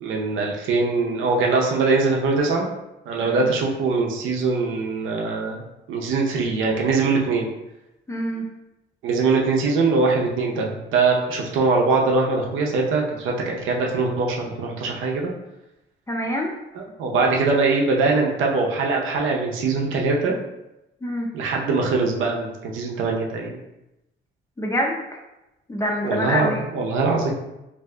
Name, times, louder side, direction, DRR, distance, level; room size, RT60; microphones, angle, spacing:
voice 1, 0.0-2.7 3.1-5.6 5.9-7.5 9.0-15.3 16.8-20.4 21.3-23.6 26.0-27.3, right 3 dB, 85° right, -1 dB, 0.6 m, -22 dB
voice 2, 8.1-8.5 16.1-16.5 21.0-21.3 24.6-25.2 25.7-26.6, equal, 15° left, 0 dB, 0.5 m, -26 dB
2.6 x 2.2 x 3.6 m, 0.93 s
cardioid pair, 90°, 20 cm